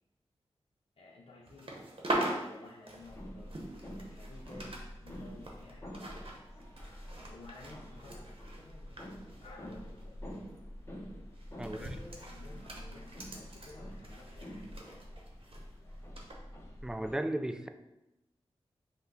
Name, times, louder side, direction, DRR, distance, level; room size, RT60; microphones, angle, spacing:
voice 1, 1.0-1.8 2.4-6.5 7.3-9.1 9.4-10.2 11.6-14.7, left 2 dB, 60° left, -4 dB, 0.7 m, -53 dB
sound 1, 1.5-4.8 5.1-10.0 10.3-10.6 11.4-15.6 16.2-16.3, right 1 dB, 55° right, 0.9 m, -41 dB
sound 2, 3.0-17.2, equal, 25° left, 0.8 m, -47 dB
voice 2, 16.8-17.7, right 1 dB, 5° right, 8 dB, 0.3 m, -35 dB
5.4 x 2.2 x 3.8 m, 0.94 s
cardioid pair, 55°, 11 cm